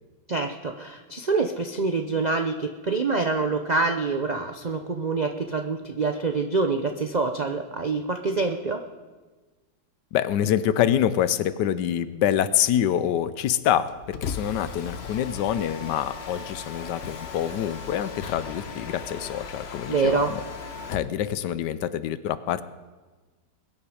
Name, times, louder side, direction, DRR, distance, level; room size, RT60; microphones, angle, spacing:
voice 1, 0.3-8.8 19.9-20.3, right 4 dB, 70° right, 5 dB, 0.4 m, -26 dB
voice 2, 10.1-20.4 20.9-22.6, left 10 dB, 85° left, 14 dB, 1.3 m, -26 dB
Mechanisms, 13.9-21.2, left 5 dB, 50° left, 0.9 m, -37 dB
21.5 x 9.9 x 4.9 m, 1.3 s
omnidirectional pair, 1.8 m